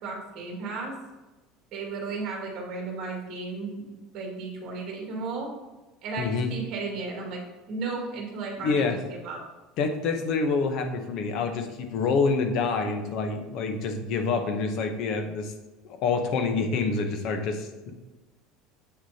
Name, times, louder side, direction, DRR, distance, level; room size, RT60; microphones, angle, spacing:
voice 1, 0.0-0.9 1.7-5.5 6.0-7.4 7.7-9.4, right 3 dB, 40° right, -1 dB, 2.1 m, -34 dB
voice 2, 6.2-6.5 8.6-9.0 9.8-15.5 15.8-17.9, left 4 dB, 45° left, 6 dB, 0.8 m, -27 dB
8.1 x 6.3 x 2.8 m, 1.2 s
cardioid pair, 175°, 0 cm